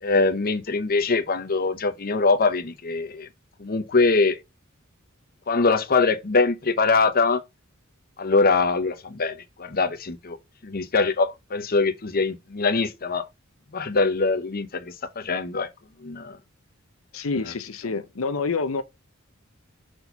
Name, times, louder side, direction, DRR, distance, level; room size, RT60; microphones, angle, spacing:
voice 1, 0.0-3.3 3.6-4.4 5.5-7.4 8.2-10.4 10.6-13.2 13.7-15.7 16.0-16.4, left 3 dB, 45° left, 0.9 m, -23 dB
voice 2, 17.1-18.8, left 4 dB, 75° left, 0.7 m, -27 dB
6.3 x 4.4 x 5.5 m
head